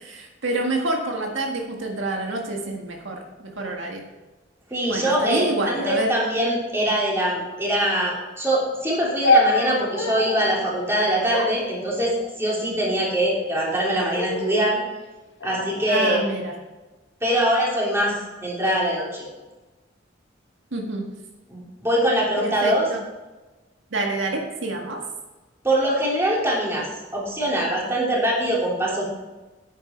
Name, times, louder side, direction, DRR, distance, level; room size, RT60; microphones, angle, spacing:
voice 1, 0.0-4.0 4.9-6.1 15.9-16.6 20.7-21.0 22.4-23.0 23.9-25.0, right 2 dB, 80° right, 1 dB, 1.7 m, -27 dB
voice 2, 4.7-14.8 15.4-16.2 17.2-18.2 18.4-19.3 21.5-22.9 25.6-26.9 27.1-29.0, right 1 dB, 15° right, -5 dB, 3.4 m, -23 dB
sound 1, 9.2-10.5 11.3-12.5 13.3-13.8 14.1-14.7 15.4-16.4, left 1 dB, 75° left, 1.6 m, -25 dB
10.0 x 9.3 x 4.5 m, 1.2 s
head